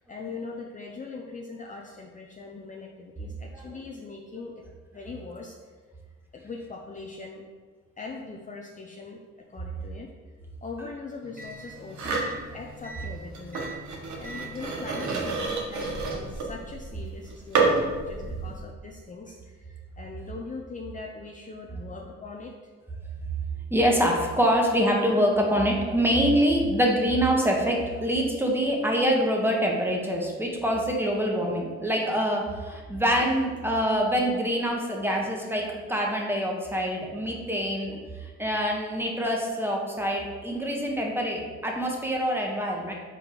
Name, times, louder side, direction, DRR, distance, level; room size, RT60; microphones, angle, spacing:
voice 1, 0.0-4.5 4.9-5.7 6.3-7.4 8.0-9.2 9.5-10.3 10.6-22.5 33.2-33.3 37.0-37.1, left 4 dB, 25° left, 0 dB, 0.6 m, -41 dB
voice 2, 3.2-3.6 12.0-12.1 12.5-12.6 23.7-42.9, equal, 5° right, -1 dB, 1.3 m, -25 dB
sound 1, 11.2-16.4, right 1 dB, 30° right, 1.5 m, -44 dB
sound 2, 11.9-12.4 13.3-18.6, right 4 dB, 70° right, 1.2 m, -29 dB
4.9 x 4.3 x 5.1 m, 1.4 s
cardioid pair, 90°, 30 cm